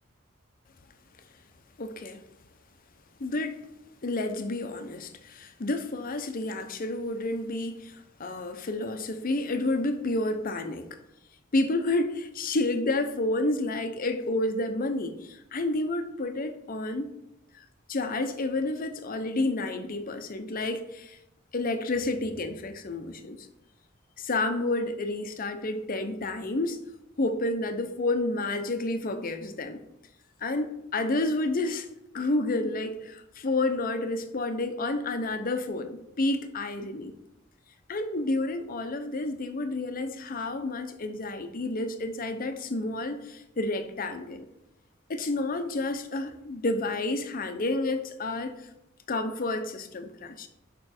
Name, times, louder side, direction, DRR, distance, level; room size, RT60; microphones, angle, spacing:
voice 1, 1.8-2.2 3.2-3.6 4.0-10.9 11.5-17.1 17.6-21.2 21.5-23.5 24.2-26.8 27.2-29.8 30.4-31.9 32.1-37.1 37.9-44.5 45.1-48.5 49.1-50.5, left 2 dB, 45° left, 0.7 m, -30 dB
6.7 x 5.1 x 4.3 m
head